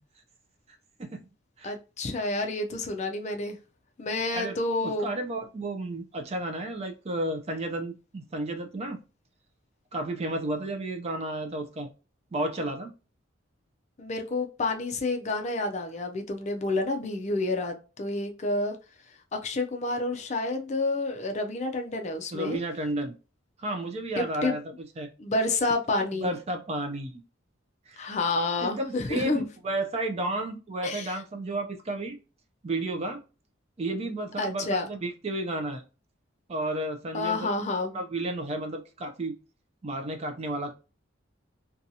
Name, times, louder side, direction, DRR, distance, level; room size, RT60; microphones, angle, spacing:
voice 1, 1.6-3.6 4.0-5.1 14.0-18.8 19.3-22.6 24.2-24.6 25.2-26.3 28.0-29.4 30.8-31.2 34.4-34.9 37.1-38.0, left 2 dB, 35° left, 0.4 m, -29 dB
voice 2, 4.8-9.0 9.9-11.9 12.3-12.9 22.3-23.1 23.6-25.1 26.1-27.1 27.9-28.2 28.6-32.2 32.6-33.2 33.8-35.8 36.5-37.5 37.9-39.4 39.8-40.7, right 1 dB, 30° right, 0.4 m, -32 dB
2.6 x 2.3 x 2.7 m
head